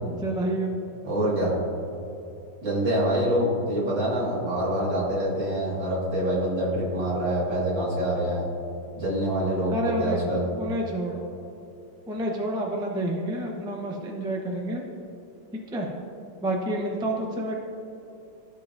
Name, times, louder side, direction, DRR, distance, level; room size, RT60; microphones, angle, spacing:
voice 1, 0.0-0.8 9.7-10.2 10.6-11.2 12.1-14.8 15.7-15.9 16.4-17.6, right 1 dB, 5° right, 0 dB, 0.4 m, -29 dB
voice 2, 1.0-1.6 2.6-8.4 9.0-10.4, right 1 dB, 85° right, -6 dB, 2.7 m, -25 dB
14.0 x 5.7 x 2.6 m, 2.8 s
omnidirectional pair, 1.9 m